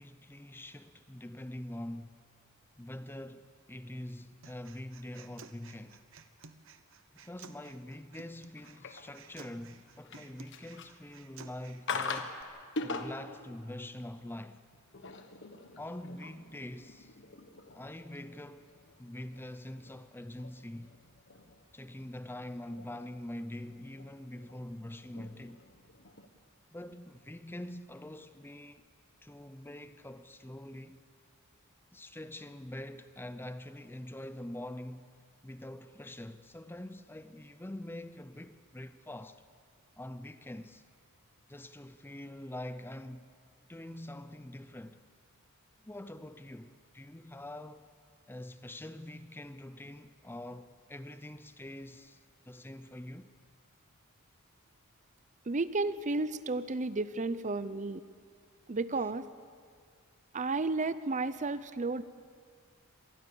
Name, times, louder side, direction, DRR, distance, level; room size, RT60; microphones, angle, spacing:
voice 1, 0.0-2.2 2.8-6.0 7.1-12.3 12.8-14.6 15.8-17.2 17.7-20.9 21.7-25.6 26.7-28.8 29.2-31.0 31.9-35.1 35.4-39.4 40.0-40.8 41.5-43.3 43.7-45.0 45.8-47.9 48.3-52.2 52.4-53.3, left 1 dB, 10° left, 0.6 m, -44 dB
Human voice, 4.4-12.4, right 5 dB, 60° right, 1.1 m, -55 dB
sound 1, 8.6-9.6 10.0-11.2 11.9-12.4 12.8-13.4 14.7-26.3, left 3 dB, 55° left, 1.4 m, -44 dB
voice 2, 55.5-58.0 58.7-59.3 60.3-62.0, right 3 dB, 35° right, 0.6 m, -32 dB
26.0 x 19.5 x 7.0 m
head